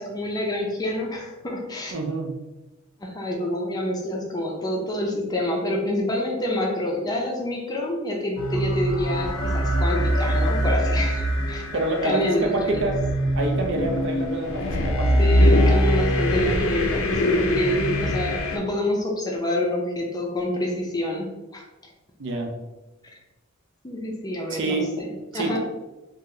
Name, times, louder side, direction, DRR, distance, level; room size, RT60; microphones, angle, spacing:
voice 1, 0.0-1.9 3.0-11.6 12.0-12.8 15.2-21.6 23.8-25.6, left 1 dB, 20° left, -1 dB, 0.4 m, -27 dB
voice 2, 1.9-2.4 11.7-13.0 13.3-15.3 18.0-18.1 22.2-22.5 24.5-24.9 25.3-25.6, right 2 dB, 55° right, 3 dB, 0.5 m, -27 dB
sound 1, 8.4-18.6, equal, 70° left, 0.5 m, -22 dB
2.8 x 2.1 x 3.7 m, 1.0 s
head